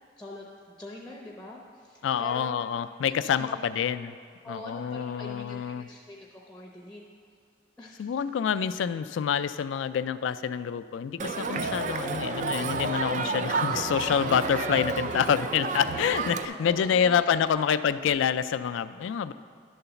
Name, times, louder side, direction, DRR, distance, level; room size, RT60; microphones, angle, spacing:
voice 1, 0.2-2.6 3.2-3.6 4.4-7.0 7.8-8.1 11.8-12.4 13.7-13.8 16.5-17.2 17.5-17.7, left 1 dB, 5° left, -2 dB, 0.6 m, -44 dB
voice 2, 2.0-4.2 4.5-5.9 8.0-19.3, left 7 dB, 85° left, 13 dB, 0.3 m, -27 dB
Crowd, 11.2-16.4, right 4 dB, 40° right, 0.4 m, -30 dB
11.0 x 4.0 x 6.8 m, 2.2 s
head